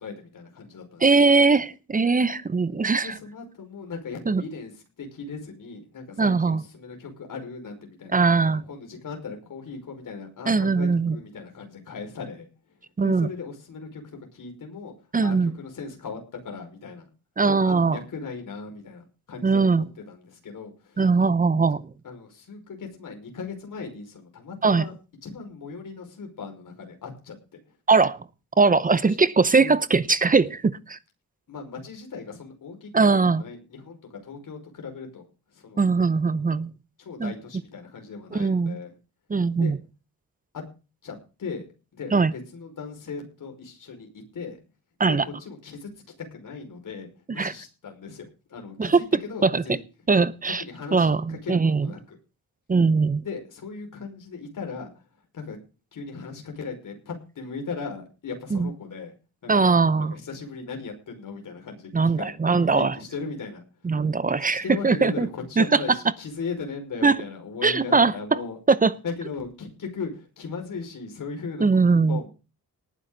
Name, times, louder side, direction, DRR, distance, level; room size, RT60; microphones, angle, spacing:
voice 1, 0.0-1.2 3.0-8.2 8.4-12.5 13.0-14.0 14.3-14.9 15.2-17.1 17.4-21.1 22.0-24.9 25.2-27.4 29.0-29.2 29.6-29.7 31.5-35.3 35.5-35.8 37.0-38.9 39.6-39.8 40.5-40.6 41.0-41.7 41.9-44.6 45.0-45.9 46.2-49.8 50.5-52.2 53.2-54.9 55.3-55.6 55.9-59.1 59.4-59.7 60.1-63.6 64.3-68.6 69.0-72.3, left 5 dB, 60° left, 5.4 m, -38 dB
voice 2, 1.0-3.1 4.3-4.4 6.2-6.6 8.1-8.6 10.5-11.2 13.0-13.3 15.1-15.5 17.4-18.0 19.4-19.8 21.0-21.9 24.6-24.9 27.9-28.2 28.6-31.0 32.9-33.4 35.8-36.7 37.2-37.3 38.3-38.8 39.3-39.8 42.1-42.3 45.0-45.2 47.4-47.5 48.8-49.0 49.4-49.8 50.1-50.6 50.9-51.9 52.7-53.2 58.5-58.7 59.5-60.1 61.9-62.9 63.8-65.3 65.6-66.0 67.0-67.2 67.6-68.1 68.7-68.9 71.6-72.2, right 4 dB, 25° right, 0.7 m, -20 dB
19.0 x 9.8 x 3.9 m
wide cardioid pair, 135°, 36 cm